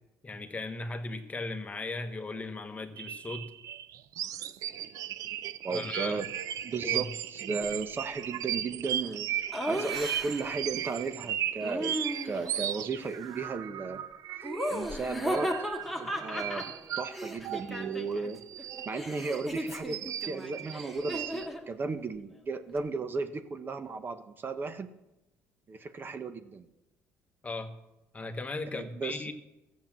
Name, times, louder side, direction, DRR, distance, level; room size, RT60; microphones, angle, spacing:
voice 1, 0.2-3.5 5.7-6.2 6.8-7.1 27.4-27.7 28.1-29.3, left 2 dB, 25° left, 7 dB, 1.3 m, -37 dB
sound 1, 3.0-15.0 15.3-19.5 19.9-21.5, right 11 dB, 65° right, 0.6 m, -36 dB
voice 2, 5.6-6.3 6.6-9.3 9.7-12.0 12.2-14.0 14.4-16.6 17.0-18.4 18.9-24.9 25.7-26.7 28.7-29.3, right 4 dB, 35° right, 9 dB, 0.9 m, -35 dB
Laughter, 9.5-10.6 11.6-12.6 14.4-18.3 18.6-21.7, equal, ahead, 1.7 m, -36 dB
14.0 x 7.4 x 7.5 m, 0.94 s
cardioid pair, 100°, 6 cm